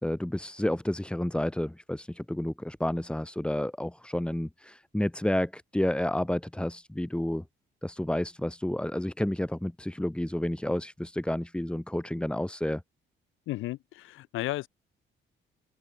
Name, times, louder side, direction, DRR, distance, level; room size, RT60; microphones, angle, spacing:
voice 1, 0.0-7.4 7.8-12.8, left 1 dB, 5° left, 1.7 m, -30 dB
voice 2, 13.5-14.7, left 17 dB, 90° left, 1.1 m, -33 dB
open air
cardioid pair, 90°, 20 cm